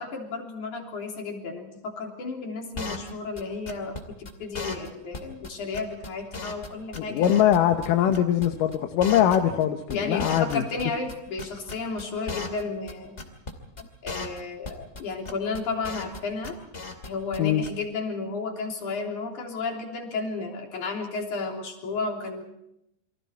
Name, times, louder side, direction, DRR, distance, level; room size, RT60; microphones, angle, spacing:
voice 1, 0.0-7.4 9.9-13.2 13.8-16.6 17.0-22.4, left 4 dB, 55° left, 1 dB, 4.8 m, -33 dB
sound 1, 2.7-3.1 3.4-3.5 3.7-4.0 4.2-4.3 4.5-4.9 5.1-5.2 5.4-5.5 5.7-6.7 6.9-8.5 8.7-10.8 11.1-12.6 12.9-13.0 13.2-13.5 13.8-13.9 14.1-14.4 14.6-15.0 15.2-16.2 16.4-17.1 17.3-17.4 17.6-17.7, left 3 dB, 20° left, 2.2 m, -35 dB
voice 2, 7.0-10.6 17.4-17.6, left 10 dB, 70° left, 6 dB, 2.5 m, -22 dB
29.0 x 24.0 x 4.7 m, 0.79 s
omnidirectional pair, 4.2 m